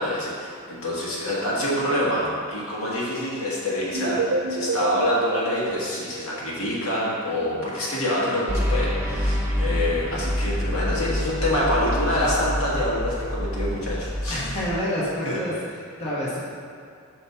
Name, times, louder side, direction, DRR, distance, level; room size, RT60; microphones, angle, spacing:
voice 1, 0.0-14.4 15.2-15.4, left 1 dB, 70° left, -6 dB, 1.6 m, -26 dB
sound 1, 3.9-6.9, right 2 dB, 80° right, 0.7 m, -29 dB
sound 2, 8.5-14.8, equal, 10° right, 0.6 m, -27 dB
voice 2, 14.3-15.5 16.0-16.4, equal, 30° left, -8 dB, 1.2 m, -27 dB
5.6 x 4.1 x 5.5 m, 2.4 s
head